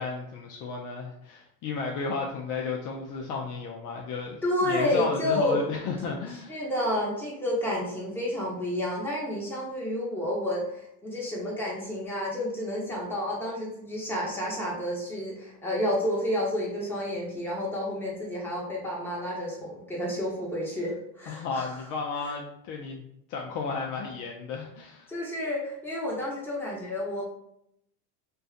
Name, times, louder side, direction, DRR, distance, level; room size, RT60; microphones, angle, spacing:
voice 1, 0.0-6.6 21.3-23.0 23.3-25.1, left 4 dB, 45° left, 0 dB, 0.4 m, -33 dB
voice 2, 4.4-5.7 6.5-21.7 25.1-27.2, left 1 dB, 5° left, -6 dB, 0.9 m, -30 dB
2.5 x 2.3 x 2.4 m, 0.75 s
supercardioid pair, 110°, 44 cm